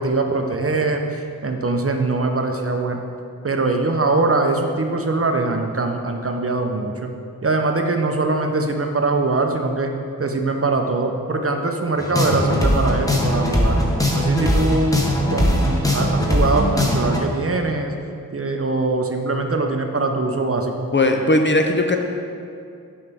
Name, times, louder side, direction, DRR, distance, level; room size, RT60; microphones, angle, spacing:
voice 1, 0.0-3.0 3.4-7.1 7.4-9.9 10.2-13.8 14.1-15.0 15.3-17.9 18.3-20.9, right 3 dB, 40° right, 4 dB, 0.6 m, -22 dB
sound 1, 12.0-17.2, equal, 10° left, 1.0 m, -20 dB
voice 2, 20.9-22.0, left 2 dB, 35° left, 4 dB, 0.5 m, -17 dB
6.8 x 5.5 x 3.4 m, 2.5 s
wide cardioid pair, 55°, 36 cm